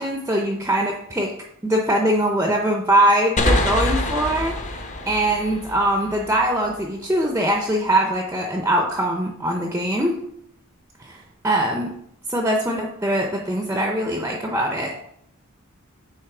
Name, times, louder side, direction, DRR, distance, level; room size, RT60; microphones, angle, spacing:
voice 1, 0.0-1.3 1.6-4.5 5.1-10.2 11.0-11.2 11.4-11.9 12.3-15.0, right 1 dB, 10° right, 2 dB, 0.5 m, -22 dB
sound 1, 3.4-6.8, left 1 dB, 35° left, 0.7 m, -25 dB
7.9 x 3.1 x 4.8 m, 0.72 s
head